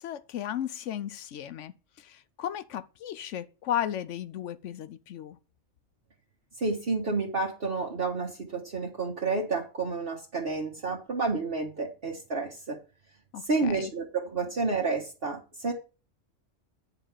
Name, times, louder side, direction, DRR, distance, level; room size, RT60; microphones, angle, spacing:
voice 1, 0.0-1.7 2.0-5.4 13.3-13.9, left 10 dB, 75° left, 1.0 m, -35 dB
voice 2, 6.6-12.8 13.4-15.7, right 3 dB, 50° right, 1.4 m, -30 dB
9.0 x 4.0 x 7.2 m
omnidirectional pair, 1.3 m